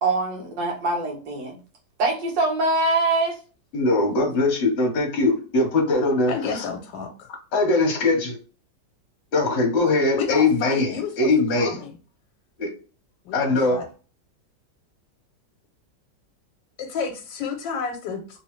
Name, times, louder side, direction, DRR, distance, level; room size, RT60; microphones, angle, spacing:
voice 1, 0.0-1.6 2.0-3.3, right 2 dB, 75° right, 1 dB, 1.6 m, -23 dB
voice 2, 3.7-6.6 7.5-8.4 9.3-11.8 12.6-12.7 13.3-13.8, left 2 dB, 45° left, 2 dB, 1.1 m, -21 dB
voice 3, 6.3-7.3 10.2-12.0 13.2-13.9 16.8-18.4, left 6 dB, 90° left, 3 dB, 1.3 m, -31 dB
3.2 x 3.0 x 3.0 m, 0.38 s
omnidirectional pair, 2.0 m